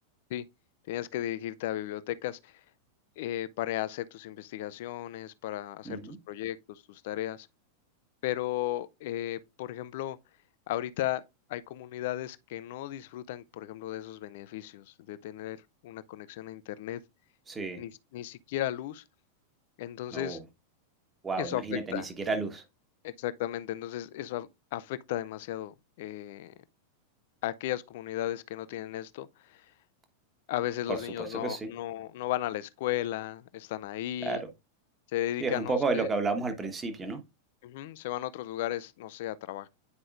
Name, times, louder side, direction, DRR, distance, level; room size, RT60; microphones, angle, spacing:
voice 1, 0.9-2.6 3.2-6.0 6.3-7.5 8.2-10.2 10.7-11.2 11.5-15.6 15.8-17.0 17.8-19.0 19.8-20.4 21.4-22.1 23.0-26.5 27.4-29.7 30.5-34.4 35.1-36.1 37.6-39.7, left 13 dB, 50° left, 0.4 m, -35 dB
voice 2, 5.8-6.2 17.5-17.8 20.1-20.4 21.2-22.6 30.9-31.7 34.2-34.5 35.4-37.2, right 3 dB, 15° right, 1.3 m, -32 dB
9.6 x 4.8 x 2.5 m
figure-of-eight pair, 90°, 0 cm